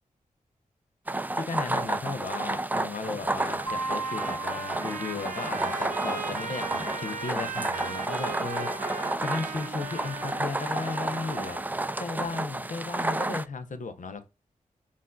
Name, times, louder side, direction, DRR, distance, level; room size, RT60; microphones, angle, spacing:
sound 1, 1.1-13.5, right 2 dB, 10° right, 0.3 m, -31 dB
voice 1, 1.3-8.9 9.2-11.6 12.0-14.3, left 4 dB, 60° left, 0.7 m, -35 dB
Trumpet, 3.5-11.7, right 4 dB, 60° right, 0.7 m, -38 dB
sound 2, 3.7-6.2, right 2 dB, 35° left, 1.1 m, -37 dB
5.4 x 2.5 x 2.2 m
cardioid pair, 45°, 15 cm